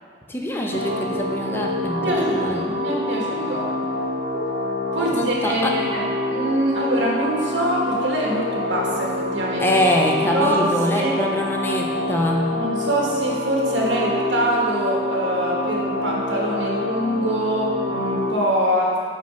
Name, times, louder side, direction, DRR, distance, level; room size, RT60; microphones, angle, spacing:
voice 1, 0.3-2.6 4.3-4.6 5.0-5.8 9.6-12.5, left 1 dB, 10° left, 0 dB, 0.5 m, -24 dB
sound 1, 0.7-18.4, left 1 dB, 50° right, 0.6 m, -26 dB
voice 2, 2.0-3.7 4.9-6.0 6.3-9.7 10.3-10.6 10.9-11.2 12.5-19.0, right 1 dB, 85° right, -3 dB, 1.3 m, -24 dB
5.2 x 4.3 x 5.7 m, 2.3 s
head